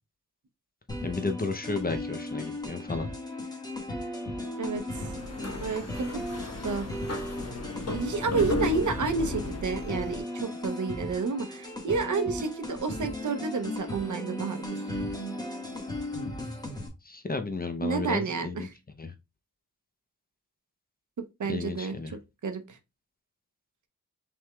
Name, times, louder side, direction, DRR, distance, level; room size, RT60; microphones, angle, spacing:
sound 1, 0.9-16.9, left 1 dB, 10° left, 1.5 m, -36 dB
voice 1, 1.0-3.1 17.0-18.7 19.0-19.1 21.5-22.2, left 3 dB, 30° left, 0.6 m, -33 dB
voice 2, 4.6-5.1 5.6-6.2 6.6-6.9 7.9-14.8 17.8-18.7 21.2-22.8, right 4 dB, 70° right, 0.8 m, -30 dB
sound 2, 4.9-10.2, left 1 dB, 50° left, 1.1 m, -35 dB
5.8 x 3.5 x 2.3 m
wide cardioid pair, 100°, 31 cm